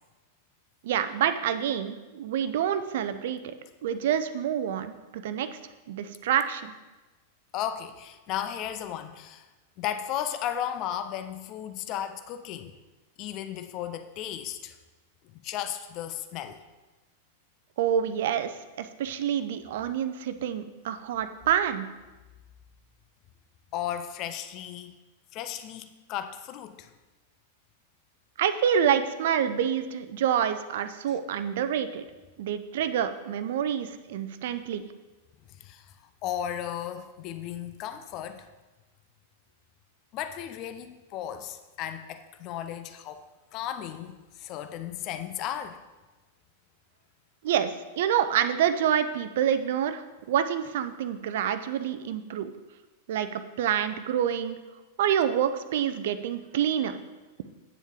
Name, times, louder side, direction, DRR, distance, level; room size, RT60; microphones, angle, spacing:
voice 1, 0.8-3.5 3.8-5.5 5.9-6.7 17.8-21.9 28.4-32.0 32.4-34.9 47.4-52.5 53.1-54.6 55.0-57.0, right 9 dB, 55° right, 11 dB, 0.6 m, -27 dB
voice 2, 7.5-9.5 9.8-12.7 13.2-14.8 15.4-16.6 23.7-25.0 25.3-26.9 31.1-31.2 35.6-35.9 36.2-38.5 40.1-43.2 43.5-45.8, left 10 dB, 40° left, 9 dB, 0.6 m, -35 dB
9.2 x 7.1 x 3.6 m, 1.2 s
figure-of-eight pair, 95°, 0 cm